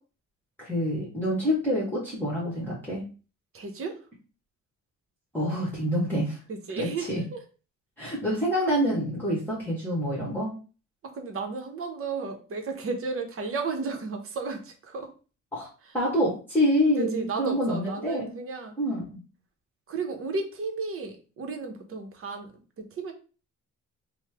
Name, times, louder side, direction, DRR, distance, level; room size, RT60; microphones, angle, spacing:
voice 1, 0.6-3.0 5.3-6.4 6.8-7.2 8.0-10.5 15.5-15.7 15.9-18.3 18.8-19.2, equal, 5° left, -5 dB, 1.2 m, -27 dB
voice 2, 3.5-4.0 6.5-7.4 11.0-15.1 17.0-18.7 19.9-23.1, right 4 dB, 45° right, 4 dB, 0.8 m, -33 dB
3.1 x 2.1 x 3.4 m, 0.35 s
cardioid pair, 90°, 30 cm